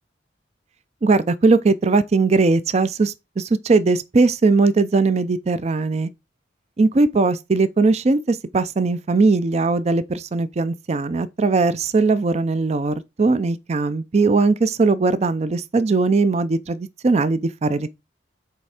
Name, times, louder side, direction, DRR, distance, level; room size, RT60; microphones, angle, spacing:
voice 1, 1.0-6.1 6.8-17.9, right 3 dB, 35° right, 0.4 m, -19 dB
8.4 x 3.4 x 4.8 m
head